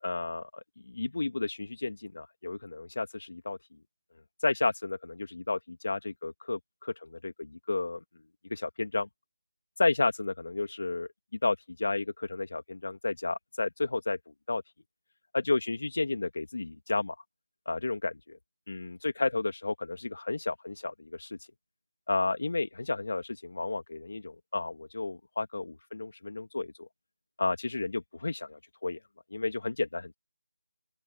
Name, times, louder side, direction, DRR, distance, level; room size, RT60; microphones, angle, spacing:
voice 1, 0.0-3.6 4.4-8.0 8.5-9.1 9.8-11.1 11.4-14.2 14.5-14.6 15.3-17.2 17.7-18.4 18.7-21.4 22.1-26.9 27.4-29.0 29.3-30.1, left 3 dB, 65° left, 1.9 m, -32 dB
open air
figure-of-eight pair, 160°, 0 cm